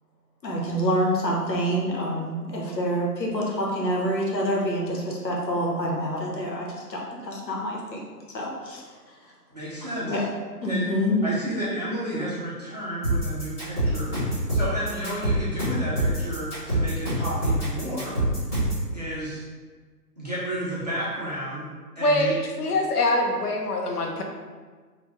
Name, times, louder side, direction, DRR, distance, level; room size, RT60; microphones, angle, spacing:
voice 1, 0.4-8.0 8.3-8.8 10.1-10.2 10.6-11.2, equal, 85° left, -2 dB, 1.0 m, -27 dB
voice 2, 9.5-10.2 10.7-10.9 11.2-18.2 18.9-19.4 20.2-21.7 22.0-22.4, equal, 25° right, -10 dB, 0.5 m, -32 dB
sound 1, 13.0-18.9, right 1 dB, 10° left, 0.8 m, -25 dB
voice 3, 22.0-22.3 22.6-24.2, left 2 dB, 65° left, 1 dB, 0.7 m, -23 dB
3.3 x 2.2 x 3.1 m, 1.5 s
figure-of-eight pair, 145°, 49 cm